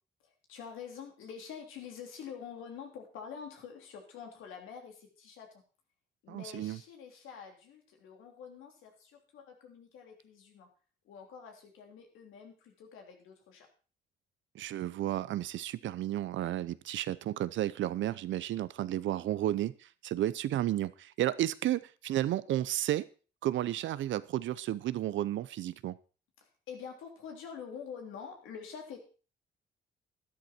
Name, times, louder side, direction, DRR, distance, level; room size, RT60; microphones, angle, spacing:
voice 1, 0.5-5.6 6.2-10.7 11.0-13.7 26.4-29.0, left 7 dB, 90° left, 3 dB, 3.4 m, -47 dB
voice 2, 6.3-6.8 14.5-23.1 23.4-26.0, right 13 dB, 75° right, 17 dB, 0.7 m, -32 dB
12.5 x 11.5 x 4.4 m, 0.37 s
cardioid pair, 90°, 20 cm